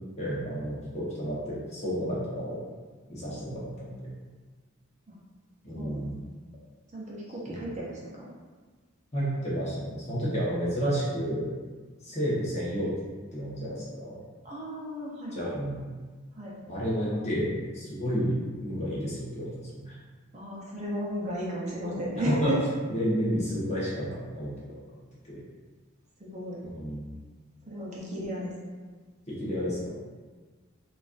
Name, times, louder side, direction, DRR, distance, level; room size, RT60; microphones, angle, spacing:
voice 1, 0.2-2.6 3.1-4.0 5.6-6.2 7.5-7.6 9.1-11.5 12.0-12.9 13.3-14.2 15.3-15.8 16.7-19.9 21.8-22.5 22.9-24.8 25.2-25.4 26.6-27.1 29.3-29.9, equal, 35° left, -7 dB, 0.9 m, -31 dB
voice 2, 5.7-6.1 6.9-8.3 14.4-15.4 16.3-16.6 18.1-18.2 20.3-22.6 26.2-26.6 27.7-28.5, right 1 dB, 35° right, -5 dB, 0.6 m, -34 dB
4.1 x 2.4 x 2.5 m, 1.4 s
head